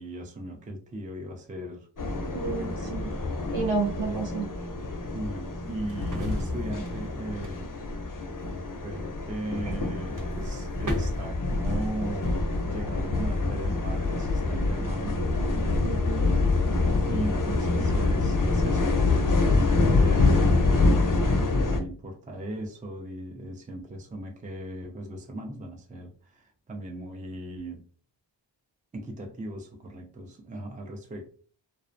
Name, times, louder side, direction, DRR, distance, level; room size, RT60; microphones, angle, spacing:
voice 1, 0.0-3.2 4.0-4.2 5.1-7.7 8.8-15.2 17.0-27.9 28.9-31.3, right 1 dB, 20° right, 0.4 m, -38 dB
sound 1, 2.0-21.8, left 3 dB, 45° left, 0.5 m, -26 dB
voice 2, 2.3-3.1 3.5-4.4 15.8-16.4, right 4 dB, 65° right, 1.0 m, -31 dB
sound 2, 4.6-8.9 9.7-9.9 10.1-12.6, equal, 40° right, 0.8 m, -38 dB
2.4 x 2.1 x 2.5 m
wide cardioid pair, 40°, 46 cm